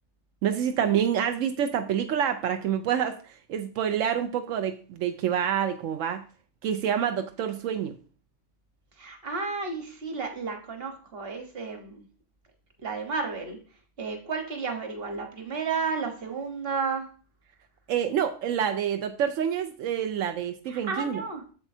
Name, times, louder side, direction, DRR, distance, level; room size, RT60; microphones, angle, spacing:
voice 1, 0.4-6.2 6.6-7.9 17.9-21.2, right 9 dB, 85° right, 6 dB, 1.0 m, -27 dB
voice 2, 9.0-12.0 12.8-13.6 14.0-17.1 20.7-21.4, right 4 dB, 50° right, 4 dB, 1.4 m, -32 dB
7.5 x 7.1 x 2.7 m, 0.40 s
omnidirectional pair, 1.3 m